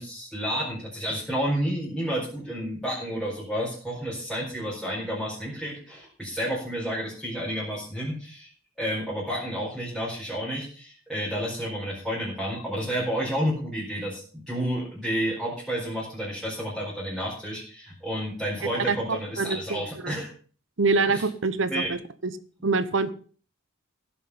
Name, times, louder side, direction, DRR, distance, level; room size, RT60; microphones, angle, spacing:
voice 1, 0.0-8.5 8.8-20.3 21.1-21.2 21.7-21.9, equal, ahead, -8 dB, 4.6 m, -30 dB
voice 2, 19.4-20.1 20.8-22.3 22.6-23.1, right 3 dB, 65° right, 13 dB, 1.1 m, -25 dB
16.5 x 7.5 x 5.7 m, 0.42 s
head